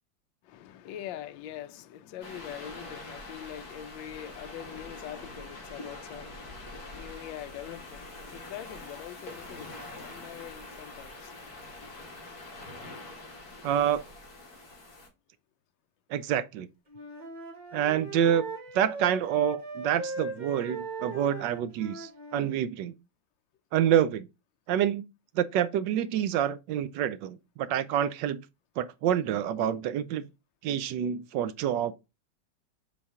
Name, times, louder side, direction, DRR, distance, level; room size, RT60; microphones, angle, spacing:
voice 1, 0.4-11.5, left 11 dB, 80° left, 1.3 m, -43 dB
sound 1, 2.2-15.1, left 2 dB, 50° left, 2.7 m, -44 dB
voice 2, 13.6-14.0 16.1-16.7 17.7-18.5 18.7-22.9 23.7-24.3 24.7-25.0 25.4-28.4 28.8-30.3 30.6-31.9, right 10 dB, 75° right, 1.1 m, -27 dB
Wind instrument woodwind instrument, 16.9-22.5, right 4 dB, 25° right, 1.9 m, -39 dB
7.2 x 4.3 x 3.6 m
omnidirectional pair, 2.1 m